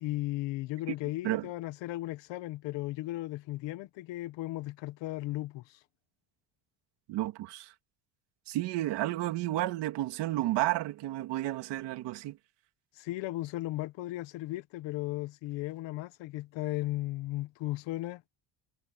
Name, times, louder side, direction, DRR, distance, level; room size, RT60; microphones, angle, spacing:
voice 1, 0.0-5.8 13.0-18.2, left 17 dB, 75° left, 1.4 m, -36 dB
voice 2, 7.1-7.7 8.5-12.4, right 16 dB, 70° right, 2.3 m, -31 dB
cardioid pair, 175°, 44 cm